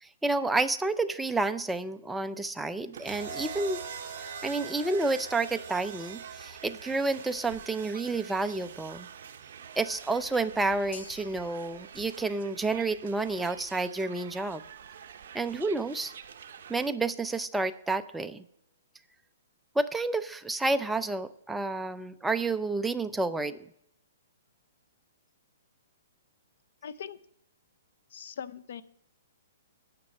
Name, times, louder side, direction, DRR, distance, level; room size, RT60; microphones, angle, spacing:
voice 1, 0.0-3.8 4.2-9.1 9.8-14.6 15.3-16.1 16.7-18.4 19.8-23.6, right 3 dB, 5° right, 9 dB, 0.4 m, -30 dB
sound 1, 2.9-16.9, right 8 dB, 60° right, 0.8 m, -48 dB
sound 2, 3.1-11.2 12.4-12.8, right 6 dB, 40° right, 2.9 m, -44 dB
sound 3, 10.9-19.3, left 5 dB, 85° left, 1.5 m, -57 dB
voice 2, 26.8-27.2 28.1-28.8, left 8 dB, 60° left, 16 dB, 0.6 m, -40 dB
9.6 x 6.1 x 8.3 m, 0.74 s
hypercardioid pair, 165°, 0 cm